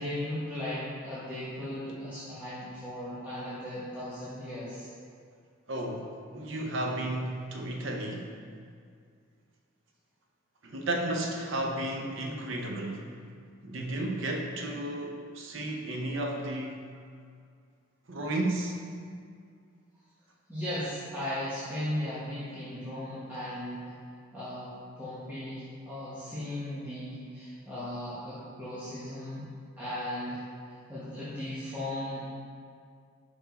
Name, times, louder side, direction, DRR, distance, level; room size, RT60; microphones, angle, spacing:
voice 1, 0.0-4.9 20.5-23.9 24.3-29.4 29.8-30.4 30.9-32.2, left 1 dB, 10° right, -14 dB, 1.2 m, -37 dB
voice 2, 5.7-8.3 10.6-13.2 13.6-16.9 18.1-18.8, right 1 dB, 65° right, 1 dB, 0.7 m, -33 dB
5.4 x 4.6 x 4.1 m, 2.2 s
head